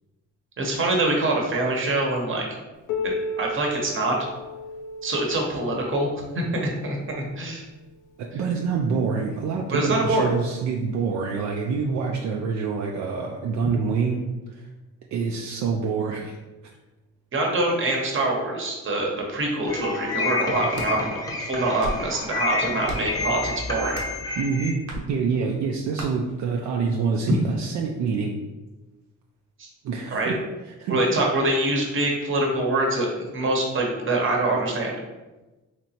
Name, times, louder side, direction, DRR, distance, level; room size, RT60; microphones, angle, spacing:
voice 1, 0.6-2.6 3.0-4.3 5.0-6.1 6.3-7.6 9.7-10.3 17.3-24.0 29.6-29.7 30.1-30.3 30.9-33.1 33.3-35.0, right 2 dB, 40° right, 0 dB, 0.9 m, -24 dB
Piano, 2.9-8.2 9.1-9.2 9.7-9.8 10.6-10.7 11.7-11.8, left 2 dB, 80° left, 0.5 m, -35 dB
voice 2, 8.3-14.2 14.5-14.7 15.1-16.4 20.5-20.6 24.4-24.8 25.1-28.3 29.8-30.3 30.8-31.0, right 5 dB, 70° right, 0 dB, 0.5 m, -26 dB
sound 1, 19.7-24.7, left 3 dB, 10° left, 0.7 m, -29 dB
sound 2, 20.5-20.9 21.6-22.1 22.8-23.2 23.9-24.2 24.9-25.1 26.0-26.1, right 1 dB, 85° right, 0.9 m, -34 dB
3.3 x 3.0 x 2.8 m, 1.1 s
cardioid pair, 90°, 30 cm